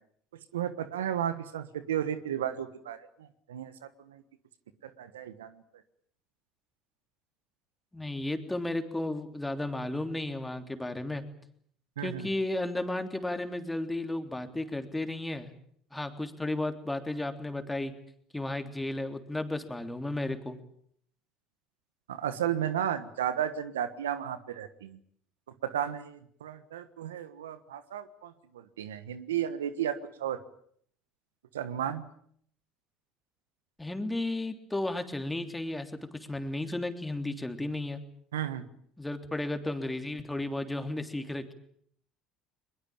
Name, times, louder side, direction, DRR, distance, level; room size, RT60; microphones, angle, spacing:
voice 1, 0.5-3.0 3.5-3.7 4.1-4.2 4.8-5.5 12.0-12.3 22.1-25.0 25.6-30.4 31.5-32.1 38.3-38.7, right 10 dB, 90° right, 13 dB, 1.4 m, -33 dB
voice 2, 7.9-11.2 12.0-15.5 15.9-17.9 18.3-20.6 33.8-35.9 36.3-38.0 39.0-41.5, left 2 dB, 10° left, 7 dB, 3.4 m, -33 dB
22.0 x 21.5 x 8.9 m, 0.65 s
hypercardioid pair, 70°, 0 cm